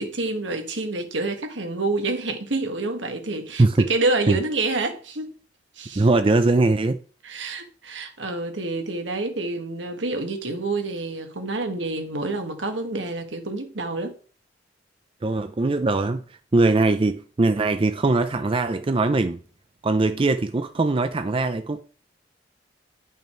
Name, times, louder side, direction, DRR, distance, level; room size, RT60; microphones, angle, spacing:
voice 1, 0.0-5.3 5.8-6.1 7.2-14.1, right 2 dB, 75° right, 1.7 m, -28 dB
voice 2, 3.6-3.9 4.3-4.4 5.9-7.0 15.2-16.2 16.5-19.4 19.8-21.8, right 2 dB, 30° right, 0.4 m, -21 dB
11.0 x 5.5 x 4.5 m
head